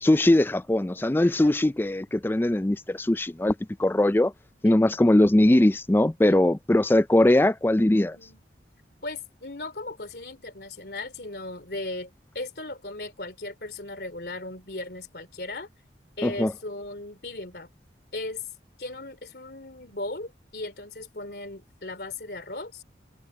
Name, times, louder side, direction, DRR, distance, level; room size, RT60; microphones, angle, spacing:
voice 1, 0.0-3.5 3.8-4.3 4.6-8.2 16.2-16.5, left 1 dB, 10° left, 0.4 m, -21 dB
voice 2, 8.0-8.4 9.0-15.7 16.2-17.7 18.1-18.4 18.8-22.8, left 2 dB, 60° left, 3.2 m, -37 dB
head